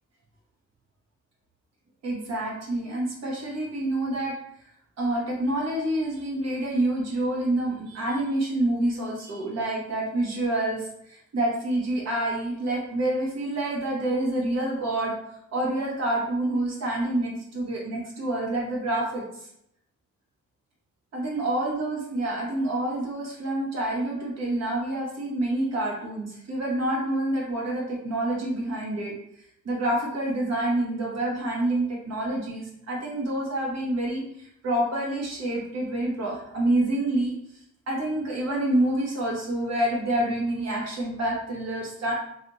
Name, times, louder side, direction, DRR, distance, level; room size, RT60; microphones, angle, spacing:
voice 1, 2.0-4.4 5.0-15.1 15.5-19.5 21.1-37.3 37.9-42.1, right 1 dB, 55° right, -3 dB, 1.4 m, -27 dB
3.1 x 2.8 x 3.0 m, 0.75 s
cardioid pair, 90°, 30 cm